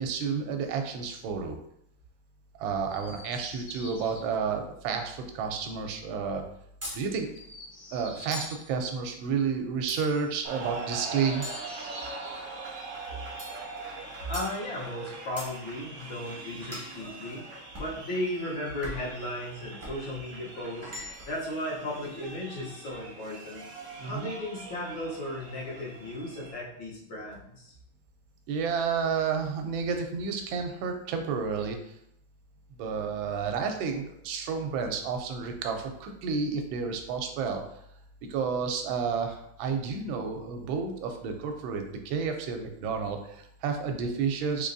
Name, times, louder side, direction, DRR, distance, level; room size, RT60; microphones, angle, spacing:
voice 1, 0.0-1.6 2.6-6.4 6.9-7.3 7.9-11.5 24.0-24.3 28.5-31.8 32.8-37.6 38.3-44.7, right 5 dB, 80° right, 5 dB, 1.3 m, -31 dB
Chirp tweet, 2.8-4.2 7.2-8.6 11.0-12.5 13.9-15.0 16.1-17.0, left 1 dB, 60° left, 1.4 m, -49 dB
sound 1, 6.8-7.1 8.3-8.7 9.9-10.3 11.4-12.3 13.4-13.7 14.3-14.6 15.4-15.6 16.7-17.0 17.7-18.0 18.8-19.2 19.8-20.0 20.8-21.4, equal, 15° right, 0.5 m, -41 dB
sound 2, 10.4-26.5, right 3 dB, 65° right, 0.7 m, -42 dB
voice 2, 14.3-17.5 17.8-23.7 24.0-27.8, left 1 dB, 80° left, -4 dB, 1.8 m, -35 dB
3.8 x 3.0 x 2.6 m, 0.73 s
omnidirectional pair, 2.1 m